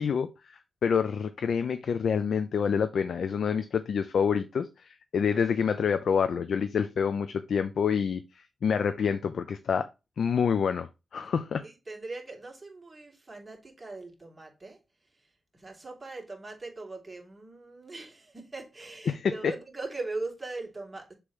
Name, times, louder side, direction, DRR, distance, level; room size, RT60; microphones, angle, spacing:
voice 1, 0.0-8.2 8.6-9.9 10.2-11.7 19.1-19.5, left 6 dB, 75° left, 0.6 m, -27 dB
voice 2, 11.6-14.8 15.1-15.3 15.5-21.1, right 3 dB, 25° right, 2.7 m, -40 dB
6.7 x 3.1 x 5.5 m
cardioid pair, 85°, 0 cm